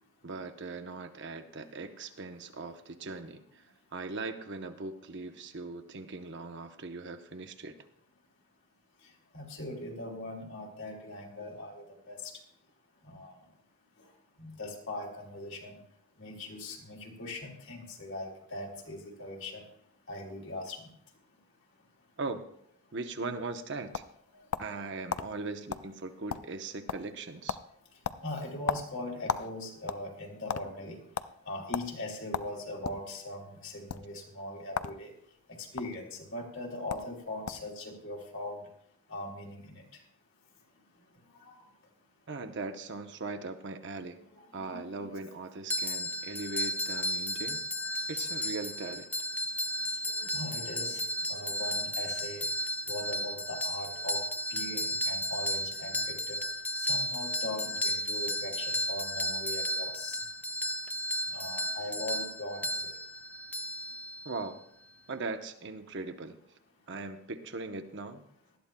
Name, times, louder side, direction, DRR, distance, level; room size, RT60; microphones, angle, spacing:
voice 1, 0.2-3.7 3.9-7.8 22.2-22.4 22.9-24.0 24.6-27.6 42.3-44.2 44.5-47.6 48.1-49.1 64.2-64.6 65.1-66.4 66.9-68.2, right 3 dB, 55° right, 7 dB, 0.8 m, -39 dB
voice 2, 9.3-12.3 13.1-13.3 14.4-15.8 16.2-19.6 20.1-20.9 28.2-31.0 31.5-35.1 35.6-36.0 36.3-38.6 39.1-39.8 41.5-41.6 44.6-44.8 46.9-47.0 50.2-52.4 52.9-56.4 56.8-60.2 61.3-62.6, left 1 dB, 60° left, 0 dB, 2.6 m, -40 dB
sound 1, 23.4-24.8 25.1-25.3 25.7-25.9 26.1-26.6 26.9-27.2 27.5-27.7 28.0-29.5 29.8-30.6 31.1-31.3 31.7-31.9 32.3-33.0 33.8-34.0 34.7-35.0 35.3-35.8 36.6-36.7 36.9-37.1 37.5-37.7, left 7 dB, 80° left, 0.5 m, -34 dB
sound 2, 45.7-64.5, equal, 10° left, 0.4 m, -34 dB
19.0 x 12.5 x 2.2 m, 0.70 s
head